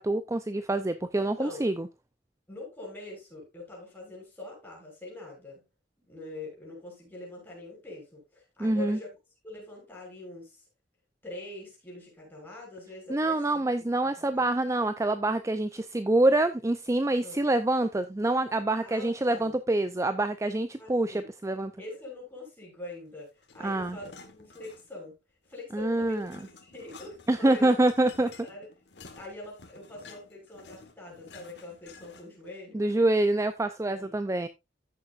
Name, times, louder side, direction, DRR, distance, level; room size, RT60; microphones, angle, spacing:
voice 1, 0.0-1.9 8.6-9.0 13.1-21.7 23.6-24.0 25.7-26.3 27.3-28.3 32.7-34.5, right 2 dB, 15° right, 0.5 m, -26 dB
voice 2, 2.5-5.6 6.1-9.1 9.4-10.6 11.2-13.7 14.0-14.5 17.2-17.4 18.8-19.6 20.8-21.3 21.8-25.2 25.5-27.7 28.2-28.7 29.1-32.9 33.9-34.1, left 2 dB, 10° left, 6.3 m, -44 dB
sound 1, 23.4-25.1 25.5-32.5, left 4 dB, 65° left, 1.6 m, -52 dB
14.5 x 6.7 x 2.5 m
head